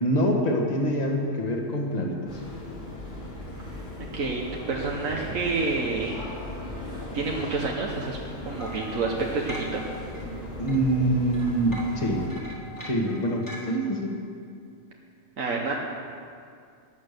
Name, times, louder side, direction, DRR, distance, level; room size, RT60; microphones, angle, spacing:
voice 1, 0.0-2.4 10.6-12.3 12.8-14.2, right 1 dB, 30° left, 1 dB, 1.7 m, -25 dB
sound 1, 2.3-12.3, left 1 dB, 60° left, 3.9 m, -38 dB
voice 2, 4.7-6.2 7.1-8.2 8.4-9.8 15.4-15.7, right 3 dB, 80° right, -1 dB, 1.5 m, -28 dB
sound 2, 8.6-10.4 10.7-13.7, equal, 15° left, 1.8 m, -41 dB
14.5 x 9.9 x 6.7 m, 2.3 s
omnidirectional pair, 1.4 m